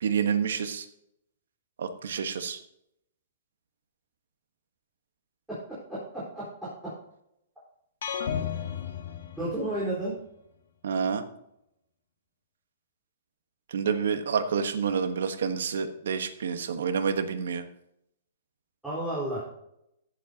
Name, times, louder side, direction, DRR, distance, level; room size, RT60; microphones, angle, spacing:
voice 1, 0.0-0.8 1.8-2.6 10.8-11.2 13.7-17.6, right 6 dB, 80° right, 9 dB, 1.2 m, -28 dB
sound 1, 8.0-10.0, left 8 dB, 75° left, 1.4 m, -33 dB
voice 2, 9.4-10.2 18.8-19.6, right 1 dB, 5° right, -10 dB, 4.3 m, -31 dB
15.0 x 7.5 x 2.8 m, 0.78 s
hypercardioid pair, 155°, 0 cm